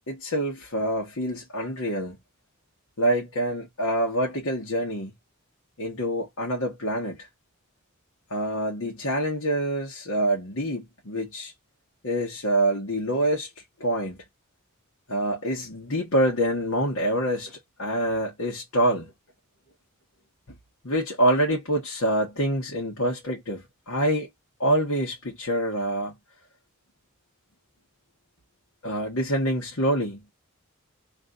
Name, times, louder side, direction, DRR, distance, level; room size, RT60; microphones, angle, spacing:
voice 1, 0.1-2.2 3.0-5.1 5.8-7.3 8.3-11.5 12.0-14.2 15.1-19.1 20.8-24.3 24.6-26.1 28.8-30.2, right 1 dB, 75° left, 1.4 m, -26 dB
3.2 x 2.7 x 3.8 m
head